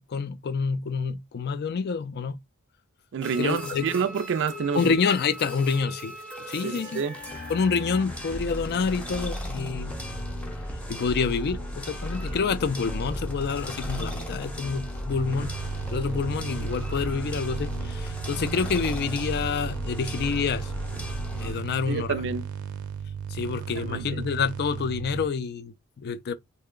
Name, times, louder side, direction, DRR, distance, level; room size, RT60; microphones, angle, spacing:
voice 1, 0.0-2.4 3.4-3.9 4.7-6.1 6.5-7.0 7.5-10.0 10.9-15.5 15.9-20.7 21.4-22.2 23.3-26.3, left 5 dB, 45° left, 0.4 m, -28 dB
voice 2, 3.1-4.9 6.6-7.2 21.9-22.5 23.9-24.3, right 6 dB, 55° right, 0.4 m, -28 dB
sound 1, 3.2-21.5, equal, 5° left, 0.7 m, -35 dB
sound 2, 15.1-25.3, right 7 dB, 90° right, 0.7 m, -36 dB
3.2 x 2.1 x 3.7 m
head